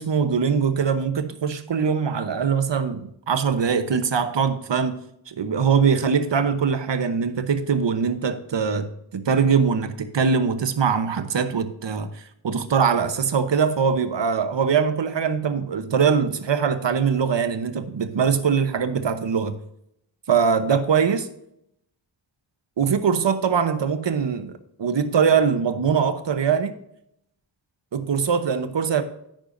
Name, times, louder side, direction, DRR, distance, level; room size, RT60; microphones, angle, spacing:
voice 1, 0.0-5.0 5.3-8.9 9.1-19.6 20.3-21.3 22.8-26.8 27.9-29.0, right 6 dB, 70° right, 1.0 m, -22 dB
10.5 x 9.0 x 2.6 m
wide cardioid pair, 70°, 45 cm